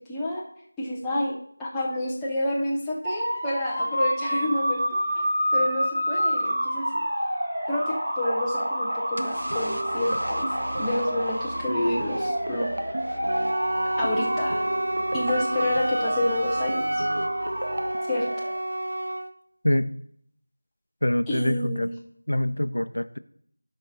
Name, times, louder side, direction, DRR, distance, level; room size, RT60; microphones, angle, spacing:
voice 1, 0.1-0.4 0.8-1.3 1.6-5.2 5.5-6.9 7.7-10.5 10.8-12.7 14.0-14.6 15.1-16.8 18.1-18.3 21.3-21.9, left 1 dB, 5° left, -6 dB, 0.5 m, -29 dB
sound 1, 3.0-18.5, equal, 15° right, 1.3 m, -29 dB
sound 2, 9.2-18.0, right 1 dB, 85° right, 0.8 m, -34 dB
Wind instrument woodwind instrument, 13.3-19.3, right 1 dB, 50° right, 0.7 m, -28 dB
voice 2, 21.0-21.9 22.3-23.2, left 1 dB, 85° left, 13 dB, 0.6 m, -25 dB
12.0 x 5.3 x 3.9 m, 0.65 s
figure-of-eight pair, 180°, 0 cm